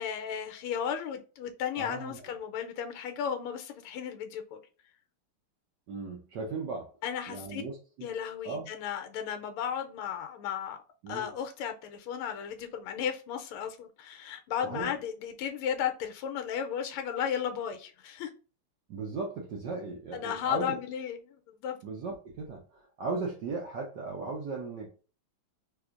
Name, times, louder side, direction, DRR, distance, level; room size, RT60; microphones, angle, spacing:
voice 1, 0.0-4.6 7.0-7.6 8.0-10.8 11.1-18.3 20.1-21.8, left 8 dB, 90° left, 6 dB, 1.5 m, -34 dB
voice 2, 1.8-2.2 5.9-6.9 7.3-8.1 8.4-8.7 11.0-11.3 14.6-14.9 18.9-20.8 21.8-24.9, right 4 dB, 65° right, -1 dB, 1.2 m, -37 dB
3.4 x 3.2 x 2.4 m, 0.36 s
omnidirectional pair, 2.3 m